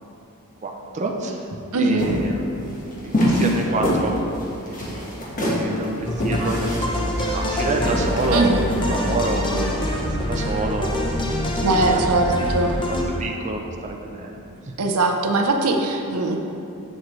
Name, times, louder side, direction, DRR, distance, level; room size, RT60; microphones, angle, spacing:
voice 1, 0.6-1.4 1.8-4.4 4.7-4.8 5.5-12.1 12.4-14.4, right 2 dB, 35° right, 1 dB, 0.5 m, -28 dB
voice 2, 1.7-2.0 8.3-8.6 11.6-12.7 14.8-16.4, right 3 dB, 75° right, 3 dB, 0.7 m, -20 dB
sound 1, 2.0-9.4, equal, 40° left, 1.4 m, -25 dB
Yell, 4.8-5.1 6.4-8.1 8.8-10.1, equal, ahead, 1.0 m, -41 dB
sound 2, 6.0-13.0, left 1 dB, 20° left, 0.8 m, -25 dB
7.5 x 7.5 x 3.2 m, 2.6 s
head